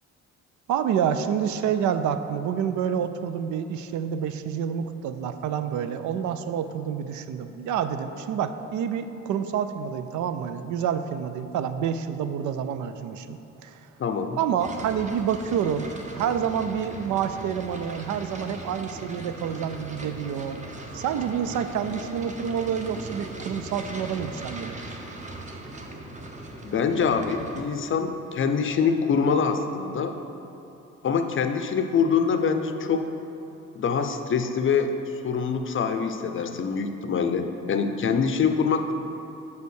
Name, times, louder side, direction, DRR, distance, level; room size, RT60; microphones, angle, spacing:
voice 1, 0.7-13.8 14.4-15.9 16.1-20.6 20.9-24.8, right 8 dB, 75° right, 10 dB, 0.5 m, -28 dB
voice 2, 14.0-14.4 26.6-30.1 31.0-33.1 33.7-34.9 35.2-38.9, left 6 dB, 40° left, 7 dB, 0.5 m, -24 dB
sound 1, 14.6-27.6, right 1 dB, 25° right, 0.8 m, -39 dB
5.6 x 4.6 x 6.3 m, 2.9 s
cardioid pair, 90°, 30 cm